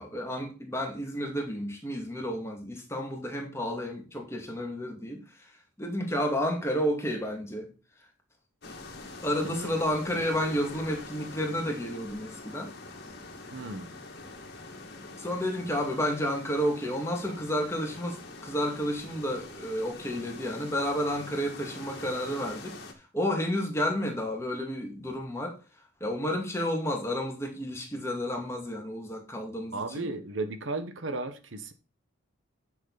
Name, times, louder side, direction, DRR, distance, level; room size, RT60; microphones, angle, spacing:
voice 1, 0.0-7.7 9.2-12.7 15.2-22.8 23.1-25.6 26.0-30.1, equal, 15° left, 2.2 m, -31 dB
sound 1, 8.6-22.9, left 3 dB, 50° left, 2.0 m, -44 dB
voice 2, 9.4-9.8 13.5-13.9 29.7-31.7, right 2 dB, 70° right, 1.3 m, -35 dB
9.9 x 6.4 x 4.0 m
head